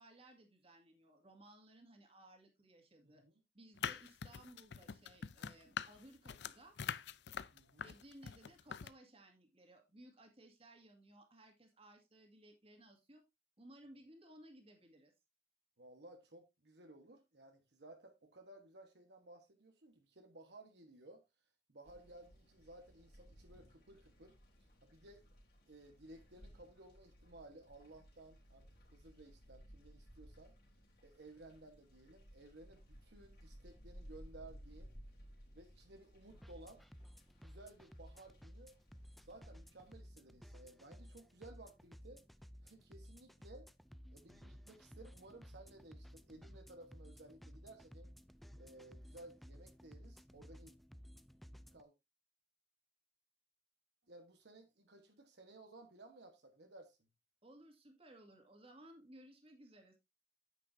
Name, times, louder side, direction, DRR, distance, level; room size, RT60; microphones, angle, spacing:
voice 1, 0.0-3.2 3.5-6.8 7.8-13.2 13.6-15.1 57.4-60.0, right 1 dB, 35° right, 2.2 m, -60 dB
sound 1, 3.8-8.9, left 7 dB, 70° left, 0.5 m, -44 dB
voice 2, 7.5-7.8 15.8-21.2 21.7-24.4 24.8-25.3 25.7-30.5 31.0-34.9 35.5-36.8 37.4-38.7 39.2-42.2 42.6-43.7 44.1-48.1 48.6-50.7 51.7-51.9 54.1-57.0, right 2 dB, 70° right, 1.3 m, -58 dB
sound 2, 21.8-40.0, equal, 55° left, 3.3 m, -60 dB
sound 3, 36.3-51.8, equal, ahead, 0.4 m, -57 dB
9.5 x 8.5 x 2.7 m
head